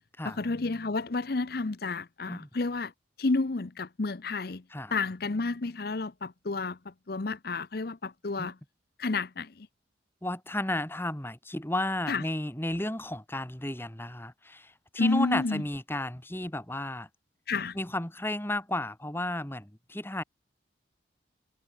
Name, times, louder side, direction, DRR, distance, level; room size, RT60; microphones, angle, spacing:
voice 1, 0.2-2.9 3.2-4.6 4.9-8.6 9.0-9.7 12.1-12.2 15.0-15.6 17.5-17.8, left 3 dB, 55° left, 0.7 m, -30 dB
voice 2, 10.2-17.1 17.8-20.2, left 1 dB, 10° left, 2.1 m, -33 dB
head